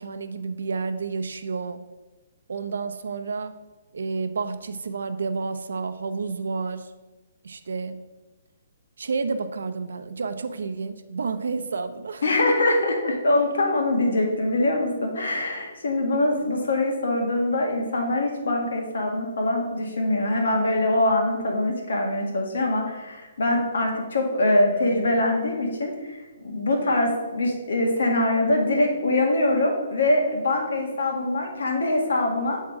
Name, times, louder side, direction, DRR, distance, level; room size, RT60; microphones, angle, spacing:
voice 1, 0.0-1.8 2.5-3.5 3.9-6.9 7.4-8.0 9.0-12.2, right 4 dB, 85° right, 9 dB, 0.6 m, -30 dB
voice 2, 12.2-32.6, left 1 dB, 80° left, 1 dB, 1.7 m, -23 dB
7.5 x 3.7 x 4.7 m, 1.2 s
hypercardioid pair, 165°, 0 cm